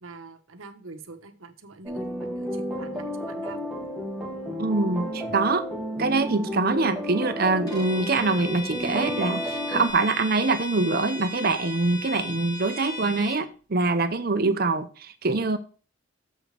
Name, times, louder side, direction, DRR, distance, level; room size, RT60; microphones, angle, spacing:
voice 1, 0.0-3.6, right 3 dB, 85° right, 1.1 m, -44 dB
sound 1, 1.8-9.9, equal, ahead, 1.6 m, -32 dB
voice 2, 4.6-5.6 6.0-15.6, right 3 dB, 50° right, 0.8 m, -24 dB
Bowed string instrument, 7.7-13.4, left 2 dB, 20° left, 2.5 m, -37 dB
7.5 x 5.0 x 6.7 m
head